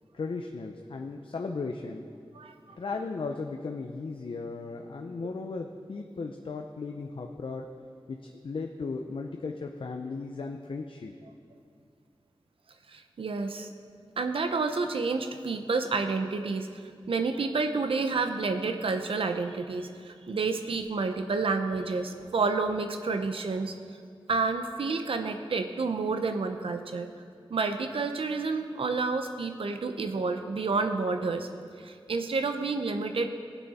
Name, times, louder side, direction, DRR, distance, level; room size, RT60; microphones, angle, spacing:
voice 1, 0.1-2.0 2.7-7.7 8.1-11.1, left 4 dB, 70° left, 3 dB, 0.6 m, -36 dB
voice 2, 2.3-2.8 12.9-13.7 14.2-16.8 17.1-23.7 24.3-27.1 27.5-31.5 31.8-33.3, right 4 dB, 90° right, 7 dB, 0.6 m, -29 dB
17.0 x 9.2 x 4.2 m, 2.2 s
wide cardioid pair, 85°, 9 cm